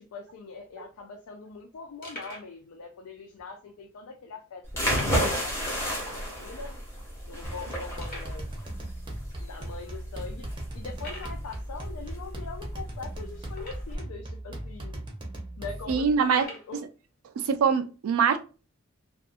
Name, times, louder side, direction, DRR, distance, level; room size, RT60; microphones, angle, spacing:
voice 1, 0.0-4.6 4.9-6.7 7.2-8.5 9.4-10.5 10.7-15.0 15.6-16.8, left 4 dB, 85° left, 0.4 m, -42 dB
sound 1, 0.6-0.7 0.8-1.0 1.5-1.6 2.0-2.5 3.3-3.4 4.9-5.5 5.7-5.8 6.3-6.4 7.0-7.1 8.0-8.4 9.2-9.3 9.9-10.0 11.0-11.4 13.5-14.1 14.9-15.0 16.3-16.7, left 1 dB, 40° left, 1.0 m, -43 dB
sound 2, 4.7-14.0, equal, 10° left, 0.8 m, -32 dB
sound 3, 7.4-16.2, right 1 dB, 20° right, 0.6 m, -39 dB
voice 2, 15.9-16.5 17.4-18.4, right 6 dB, 80° right, 0.3 m, -23 dB
2.5 x 2.3 x 2.5 m
head